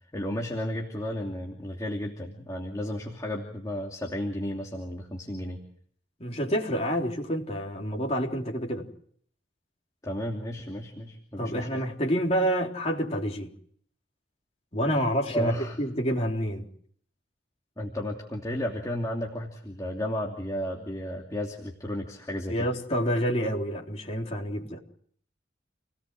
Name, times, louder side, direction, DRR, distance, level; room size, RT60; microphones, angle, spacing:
voice 1, 0.1-5.6 10.0-11.8 15.3-15.8 17.8-22.7, equal, 20° left, 0 dB, 2.8 m, -33 dB
voice 2, 6.2-8.9 11.4-13.5 14.7-16.7 22.5-24.8, equal, 35° left, 0 dB, 3.8 m, -28 dB
29.5 x 18.0 x 7.7 m, 0.62 s
head